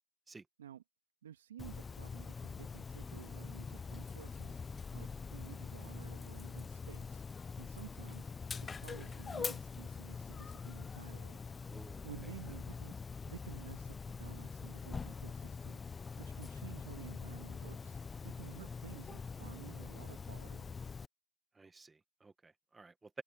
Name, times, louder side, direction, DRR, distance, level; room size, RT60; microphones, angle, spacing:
voice 1, 1.2-4.6 4.9-7.2 7.6-8.3 8.6-11.4 12.0-12.9 13.3-15.8 16.2-18.0 18.2-20.7, right 10 dB, 65° right, 2.4 m, -53 dB
Dog, 1.6-21.1, left 5 dB, 10° left, 0.5 m, -44 dB
voice 2, 11.6-12.1 21.6-23.2, right 3 dB, 5° right, 1.2 m, -53 dB
hypercardioid pair, 160°, 0 cm